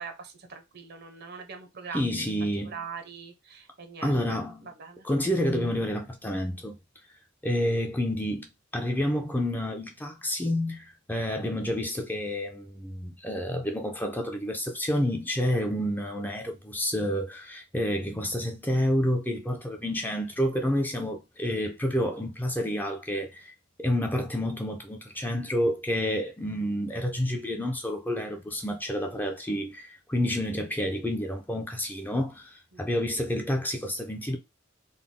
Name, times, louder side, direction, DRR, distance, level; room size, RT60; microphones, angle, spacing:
voice 1, 0.0-2.3 2.6-5.1 32.7-32.9, right 5 dB, 55° right, 0.8 m, -42 dB
voice 2, 1.9-2.7 4.0-4.6 5.0-6.7 7.4-8.5 8.7-23.5 23.8-34.4, equal, 10° left, 0.6 m, -29 dB
4.0 x 2.2 x 3.6 m
head